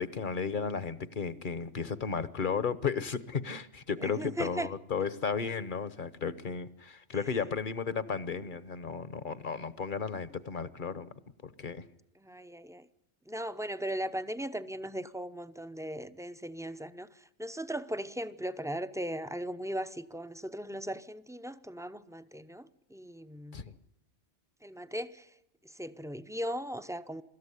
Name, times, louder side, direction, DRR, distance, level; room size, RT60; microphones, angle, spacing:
voice 1, 0.0-11.1 11.4-11.8 23.5-23.6, left 6 dB, 45° left, 1.1 m, -34 dB
voice 2, 4.0-4.7 12.2-12.9 13.3-17.1 17.4-23.6 24.6-25.3 25.6-27.2, right 1 dB, 5° right, 0.6 m, -38 dB
24.5 x 13.5 x 9.8 m
omnidirectional pair, 1.2 m